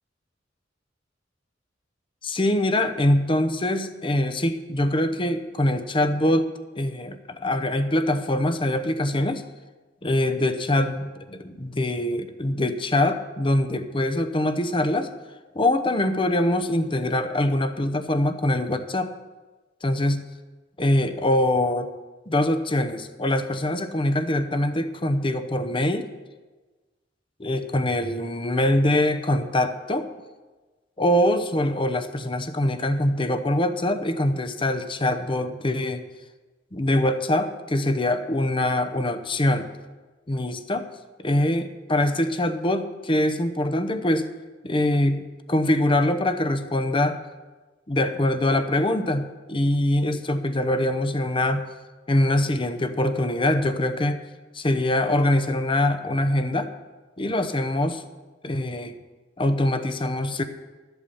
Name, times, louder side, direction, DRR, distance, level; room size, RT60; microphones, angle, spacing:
voice 1, 2.2-9.4 10.0-15.1 15.5-19.1 19.8-20.2 20.8-21.9 22.3-26.1 27.4-30.1 31.0-36.0 36.7-39.7 40.3-40.9 41.2-44.3 44.6-47.2 47.9-51.7 52.1-54.2 54.5-56.7 57.2-58.0 58.4-58.9 59.4-60.4, left 1 dB, 30° left, 10 dB, 0.8 m, -23 dB
13.0 x 8.1 x 7.0 m, 1.3 s
head